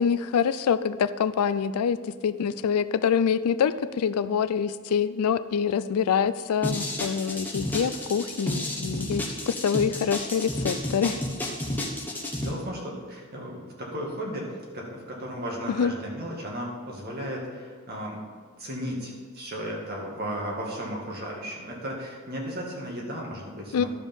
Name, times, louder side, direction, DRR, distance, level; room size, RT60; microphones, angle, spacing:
voice 1, 0.0-2.0 2.2-11.2 15.7-15.9 23.7-23.8, left 7 dB, 80° left, 13 dB, 0.4 m, -25 dB
sound 1, 6.6-12.5, left 1 dB, 10° left, 1.0 m, -31 dB
voice 2, 12.4-14.5 14.7-18.2 18.6-23.9, equal, 45° right, -2 dB, 2.0 m, -35 dB
12.5 x 5.1 x 5.4 m, 1.5 s
head